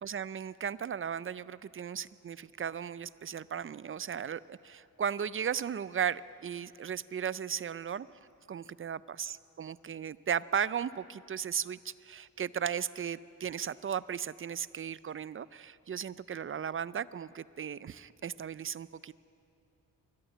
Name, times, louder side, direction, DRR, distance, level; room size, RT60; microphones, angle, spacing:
voice 1, 0.0-8.1 8.5-19.1, right 8 dB, 40° right, 18 dB, 0.4 m, -36 dB
23.0 x 13.5 x 9.1 m, 2.6 s
wide cardioid pair, 115°, 35 cm